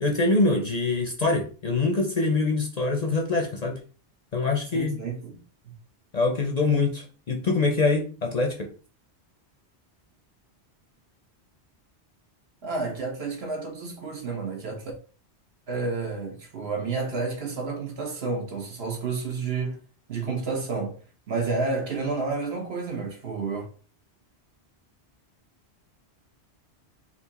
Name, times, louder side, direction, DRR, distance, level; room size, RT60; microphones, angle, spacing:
voice 1, 0.0-3.8 4.3-4.9 6.1-8.7, left 3 dB, 45° left, 0.6 m, -24 dB
voice 2, 4.7-5.4 5.6-5.7 12.6-14.9 15.7-19.8 20.1-21.0 21.3-23.7, right 4 dB, 65° right, 1.4 m, -30 dB
4.2 x 2.4 x 4.1 m
omnidirectional pair, 1.1 m